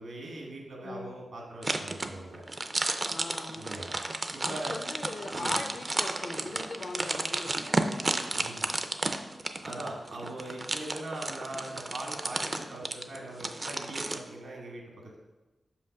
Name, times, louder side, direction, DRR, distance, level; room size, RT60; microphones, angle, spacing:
voice 1, 0.0-2.4 3.6-3.9 4.3-4.8 5.3-5.5 8.3-8.7 9.5-15.2, right 1 dB, 75° right, -1 dB, 1.8 m, -41 dB
voice 2, 0.8-1.2 3.1-3.8 4.4-8.5, left 3 dB, 50° left, 7 dB, 0.6 m, -41 dB
sound 1, 1.6-14.2, right 2 dB, 30° right, 0.5 m, -32 dB
5.9 x 5.7 x 5.3 m, 1.1 s
wide cardioid pair, 140°, 0 cm